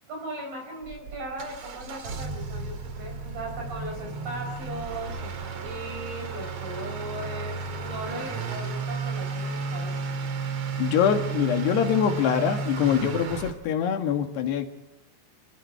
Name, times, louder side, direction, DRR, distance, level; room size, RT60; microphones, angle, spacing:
voice 1, 0.1-10.0, right 1 dB, 60° right, 1 dB, 6.5 m, -38 dB
Motor vehicle (road) / Accelerating revving vroom, 0.8-13.5, right 4 dB, 45° right, 2.4 m, -33 dB
voice 2, 10.8-14.7, left 8 dB, 80° left, 6 dB, 4.0 m, -24 dB
28.5 x 20.0 x 4.6 m, 0.91 s
omnidirectional pair, 4.7 m